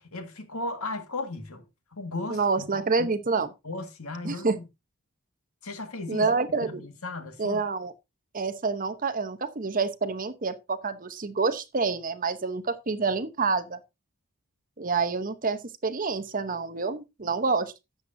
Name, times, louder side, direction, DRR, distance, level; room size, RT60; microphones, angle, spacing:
voice 1, 0.0-1.6 1.9-2.6 3.0-3.1 3.6-4.6 5.6-6.3 6.6-7.6, left 2 dB, 85° left, 1.8 m, -36 dB
voice 2, 2.3-3.5 4.2-4.6 6.1-6.9 7.4-7.9 8.3-13.8 14.8-17.7, right 4 dB, 40° right, 0.9 m, -27 dB
12.0 x 8.1 x 2.7 m
head